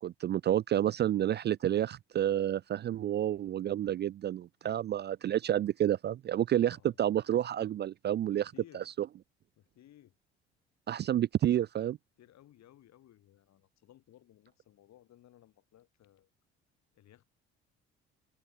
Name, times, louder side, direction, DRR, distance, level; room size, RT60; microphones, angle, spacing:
voice 1, 0.0-8.5 10.9-12.0, right 11 dB, 35° right, 0.4 m, -29 dB
voice 2, 6.6-7.2 8.2-8.9 9.6-10.2 12.2-16.3 16.9-17.3, left 12 dB, 60° left, 6.0 m, -60 dB
open air
hypercardioid pair, 55°, 31 cm